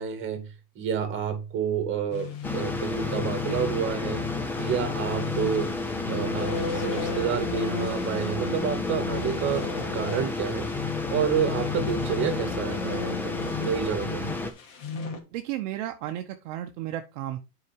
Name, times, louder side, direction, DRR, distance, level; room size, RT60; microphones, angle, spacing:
voice 1, 0.0-4.3 4.6-5.7 6.1-9.7 9.9-10.7 11.1-14.2, right 8 dB, 25° right, 2.2 m, -29 dB
sound 1, 2.1-15.2, left 5 dB, 60° left, 2.7 m, -35 dB
sound 2, 2.4-14.5, left 3 dB, 5° left, 0.5 m, -31 dB
voice 2, 15.3-17.4, right 13 dB, 50° right, 0.9 m, -33 dB
8.2 x 4.9 x 4.5 m
supercardioid pair, 145°, 46 cm